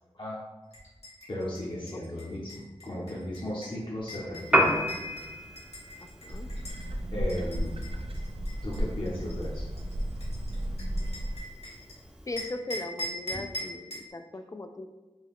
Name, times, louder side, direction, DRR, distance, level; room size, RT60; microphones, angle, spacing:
sound 1, 0.7-6.9 7.3-11.9 12.4-14.1, equal, 80° left, 1.4 m, -42 dB
voice 1, 1.3-4.9 7.1-7.7 8.6-9.6, left 1 dB, 50° left, -7 dB, 0.9 m, -35 dB
Piano, 4.4-12.5, equal, 10° right, 0.6 m, -33 dB
voice 2, 6.0-6.5 12.3-14.9, left 2 dB, 30° left, 7 dB, 0.3 m, -39 dB
sound 2, 6.3-11.4, equal, 65° right, 0.5 m, -33 dB
4.4 x 2.3 x 3.6 m, 1.2 s
wide cardioid pair, 70°, 11 cm